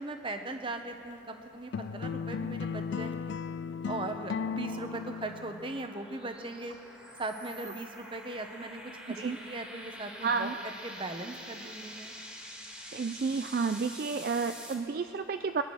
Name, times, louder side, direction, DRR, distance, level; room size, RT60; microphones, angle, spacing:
voice 1, 0.0-3.4 3.9-6.8 7.2-12.1, right 2 dB, 25° right, 6 dB, 1.0 m, -39 dB
sound 1, 1.7-5.9, left 6 dB, 60° left, 0.3 m, -36 dB
sound 2, 3.6-14.7, equal, 5° right, 1.8 m, -47 dB
voice 2, 10.2-10.5 12.9-15.6, right 5 dB, 50° right, 9 dB, 0.3 m, -31 dB
22.0 x 10.5 x 6.3 m, 2.8 s
head